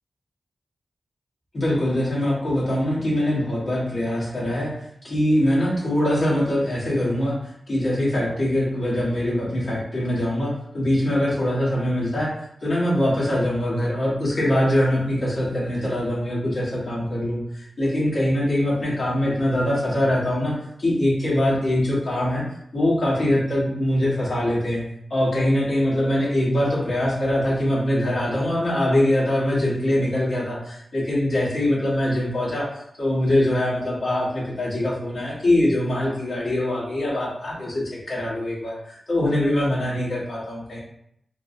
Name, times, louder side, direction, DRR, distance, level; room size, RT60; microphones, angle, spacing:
voice 1, 1.5-4.7 5.0-12.3 12.6-22.4 22.7-24.8 25.1-40.8, left 1 dB, 55° left, -7 dB, 1.3 m, -23 dB
3.3 x 2.1 x 2.6 m, 0.73 s
wide cardioid pair, 110°, 0 cm